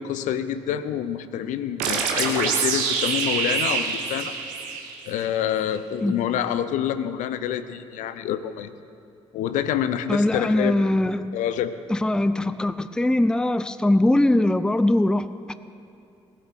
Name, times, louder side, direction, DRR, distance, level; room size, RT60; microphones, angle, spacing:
voice 1, 0.0-4.3 5.1-8.7 9.3-10.8 11.3-11.7, left 10 dB, 60° left, 12 dB, 0.7 m, -27 dB
sound 1, 1.8-5.3, right 5 dB, 65° right, 1.5 m, -25 dB
voice 2, 10.1-11.3 11.9-15.3, left 1 dB, 5° left, 13 dB, 0.5 m, -21 dB
19.0 x 7.7 x 6.3 m, 2.6 s
figure-of-eight pair, 40°, 15 cm